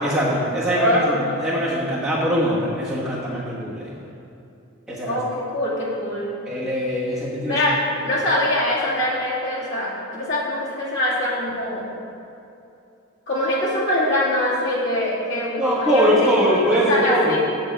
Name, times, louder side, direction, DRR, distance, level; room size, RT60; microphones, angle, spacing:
voice 1, 0.0-3.9 4.9-5.2 6.5-7.6 8.0-8.1 15.6-17.4, equal, 5° right, -8 dB, 1.3 m, -22 dB
voice 2, 0.8-1.2 5.1-6.4 7.5-7.8 8.0-11.8 13.3-17.4, left 1 dB, 55° left, -7 dB, 2.3 m, -23 dB
8.0 x 5.3 x 7.3 m, 2.7 s
head